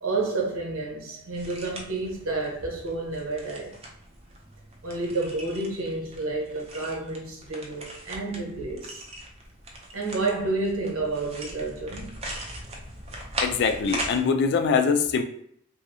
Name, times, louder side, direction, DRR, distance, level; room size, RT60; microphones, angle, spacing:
voice 1, 0.0-3.8 4.8-9.0 9.9-12.2, right 3 dB, 75° right, 0.9 m, -30 dB
sound 1, 1.4-14.2, right 1 dB, 30° right, 0.5 m, -39 dB
voice 2, 13.4-15.2, left 5 dB, 50° left, 0.3 m, -23 dB
3.1 x 2.7 x 2.7 m
head